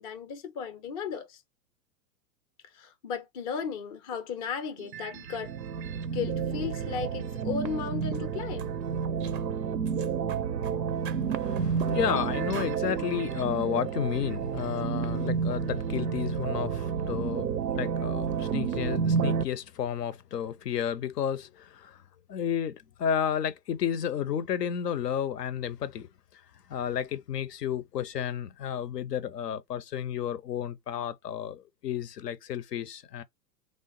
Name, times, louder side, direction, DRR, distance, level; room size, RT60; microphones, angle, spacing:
voice 1, 0.0-1.4 2.7-5.6 6.1-8.7, left 6 dB, 25° left, 0.4 m, -35 dB
sound 1, 4.8-19.4, right 6 dB, 85° right, 0.6 m, -30 dB
sound 2, 8.0-8.2 8.6-8.7 9.2-9.5 9.9-10.8 11.1-12.2 12.5-12.8, right 8 dB, 35° right, 0.4 m, -45 dB
voice 2, 11.0-17.5 17.7-22.0 22.3-26.4 26.7-33.2, left 9 dB, 70° left, 0.6 m, -32 dB
3.3 x 2.0 x 2.4 m
figure-of-eight pair, 95°, 50 cm